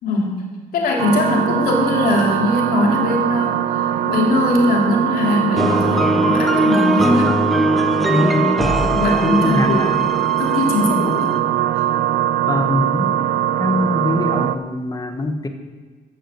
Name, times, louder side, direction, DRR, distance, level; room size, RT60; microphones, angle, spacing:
voice 1, 0.0-7.4 8.9-9.8 10.4-11.3, left 2 dB, 80° left, -1 dB, 2.9 m, -20 dB
sound 1, 1.0-14.6, right 12 dB, 80° right, 0.6 m, -21 dB
sound 2, 5.5-11.4, equal, ahead, 1.1 m, -21 dB
voice 2, 8.1-8.8 9.0-10.0 10.8-11.2 12.5-13.1 13.6-15.5, left 2 dB, 25° left, 6 dB, 1.5 m, -23 dB
13.5 x 7.3 x 7.2 m, 1.4 s
cardioid pair, 90°, 16 cm